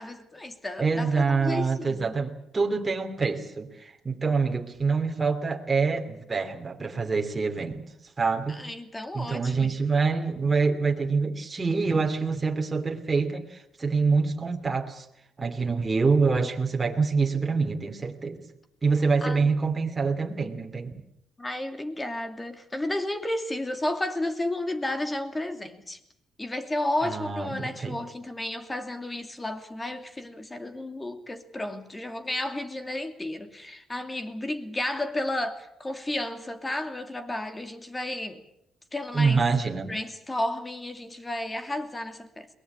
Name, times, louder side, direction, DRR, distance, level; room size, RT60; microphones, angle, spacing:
voice 1, 0.0-2.2 8.5-9.8 19.2-19.5 21.4-26.0 26.4-38.4 38.9-39.4 39.9-42.5, left 1 dB, 15° left, 2.6 m, -32 dB
voice 2, 0.8-7.8 8.2-8.6 9.1-15.0 15.4-18.4 18.8-20.9 27.0-28.0 39.1-39.9, right 4 dB, 25° right, 2.8 m, -26 dB
22.5 x 19.0 x 8.6 m
cardioid pair, 90°, 0 cm